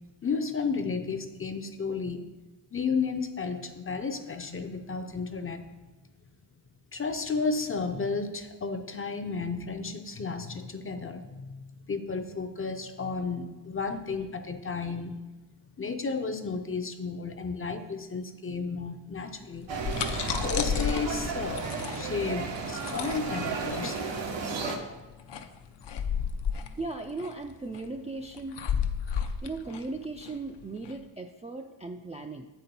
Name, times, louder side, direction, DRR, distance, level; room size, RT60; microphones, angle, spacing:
voice 1, 0.2-2.3 2.7-5.7 6.9-15.2 15.8-19.7 20.3-21.7 21.9-24.0, left 4 dB, 30° left, 7 dB, 0.5 m, -33 dB
sound 1, 19.5-31.0, left 7 dB, 70° left, 0.6 m, -33 dB
sound 2, 19.7-24.8, right 4 dB, 85° right, 1.0 m, -33 dB
voice 2, 26.8-28.6 29.4-32.5, right 3 dB, 15° right, 3 dB, 0.3 m, -37 dB
8.0 x 4.3 x 5.3 m, 1.1 s
wide cardioid pair, 105°, 44 cm